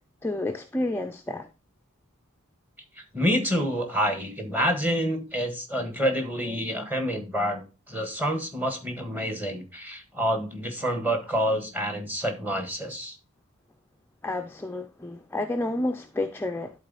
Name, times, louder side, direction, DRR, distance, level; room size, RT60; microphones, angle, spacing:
voice 1, 0.2-1.5 14.2-16.7, left 2 dB, 10° left, 0.4 m, -30 dB
voice 2, 3.1-13.2, equal, 10° right, 1.4 m, -28 dB
12.0 x 4.1 x 4.0 m
head